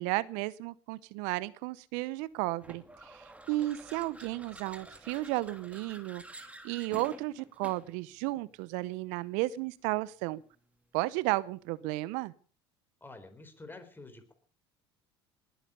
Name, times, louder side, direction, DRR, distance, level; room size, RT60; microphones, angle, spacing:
voice 1, 0.0-10.4 10.9-12.3, right 19 dB, 65° right, 0.7 m, -33 dB
sound 1, 2.6-8.0, right 2 dB, 10° right, 2.5 m, -50 dB
voice 2, 13.0-14.3, left 2 dB, 15° left, 3.9 m, -48 dB
20.0 x 9.2 x 6.8 m
hypercardioid pair, 80°, 14 cm